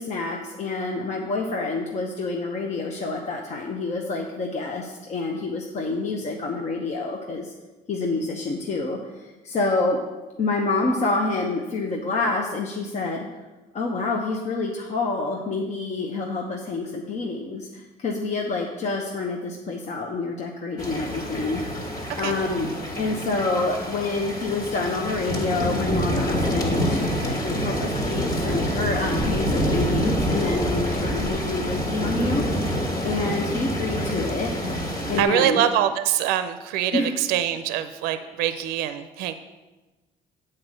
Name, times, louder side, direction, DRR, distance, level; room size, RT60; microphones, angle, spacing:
voice 1, 0.0-7.5 7.9-10.0 10.4-13.3 13.7-22.7 23.0-32.4 33.0-34.5 35.1-35.6 36.9-37.1, left 3 dB, 45° left, 1 dB, 0.9 m, -27 dB
sound 1, 20.8-35.2, equal, 25° left, 1.6 m, -26 dB
voice 2, 35.2-39.3, right 11 dB, 90° right, 10 dB, 0.5 m, -24 dB
7.9 x 4.3 x 6.4 m, 1.2 s
cardioid pair, 95°, 16 cm